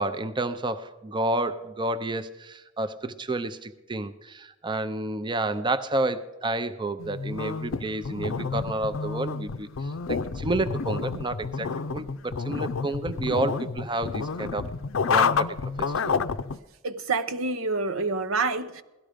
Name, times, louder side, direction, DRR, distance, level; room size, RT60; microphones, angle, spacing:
voice 1, 0.0-14.7 15.1-16.2, right 2 dB, 25° right, 0.6 m, -30 dB
sound 1, 7.0-16.6, left 5 dB, 70° left, 0.5 m, -29 dB
voice 2, 16.8-18.8, right 3 dB, 80° right, 0.9 m, -27 dB
17.5 x 13.0 x 5.1 m
head